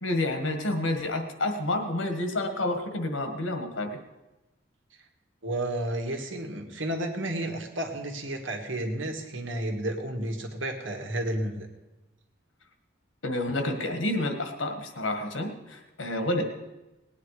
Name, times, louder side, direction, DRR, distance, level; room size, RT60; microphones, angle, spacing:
voice 1, 0.0-4.0 13.2-16.4, left 1 dB, 80° left, 6 dB, 1.7 m, -29 dB
voice 2, 5.4-11.7, right 1 dB, 75° right, 4 dB, 1.9 m, -32 dB
19.0 x 9.6 x 4.9 m, 1.0 s
head